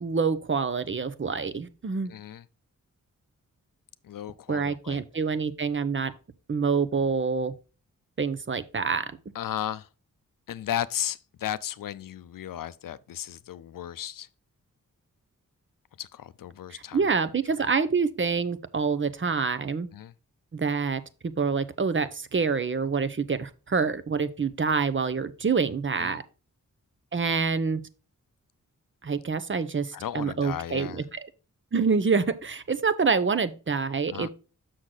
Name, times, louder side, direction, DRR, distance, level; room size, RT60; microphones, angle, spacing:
voice 1, 0.0-2.1 4.5-6.1 6.5-7.5 8.2-9.0 16.7-19.9 20.5-21.0 21.4-26.2 27.1-27.8 29.0-31.2 31.7-34.3, right 5 dB, 35° right, 0.7 m, -26 dB
voice 2, 2.1-2.4 4.1-5.0 9.3-9.9 10.5-14.3 16.0-17.0 17.6-17.7 19.9-20.1 26.0-26.2 29.9-31.0 34.1-34.3, left 11 dB, 80° left, 0.5 m, -35 dB
6.3 x 6.2 x 3.9 m
wide cardioid pair, 70°, 33 cm